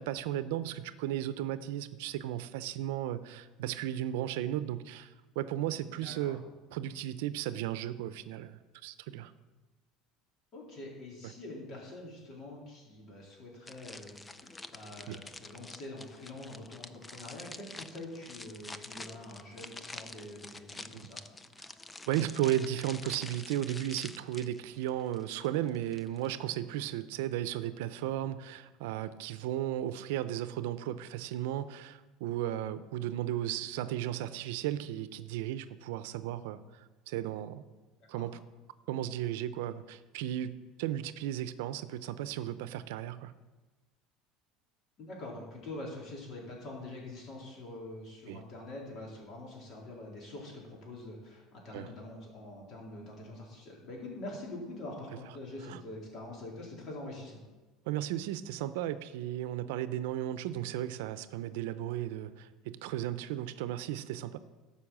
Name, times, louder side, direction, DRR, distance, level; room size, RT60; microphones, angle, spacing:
voice 1, 0.0-5.1 5.4-6.4 6.7-9.3 11.2-11.3 15.1-15.2 20.9-21.0 22.1-36.6 37.1-37.6 38.1-38.4 38.9-40.5 40.8-43.3 48.3-48.4 51.7-51.9 55.7-55.8 57.9-64.4, right 12 dB, 90° right, 14 dB, 0.6 m, -35 dB
voice 2, 5.9-6.4 10.5-21.2 38.1-38.2 45.0-57.4, left 2 dB, 40° left, -2 dB, 3.8 m, -45 dB
sound 1, 13.7-26.3, left 2 dB, 10° left, 0.5 m, -48 dB
13.0 x 5.7 x 7.4 m, 1.2 s
cardioid pair, 140°, 0 cm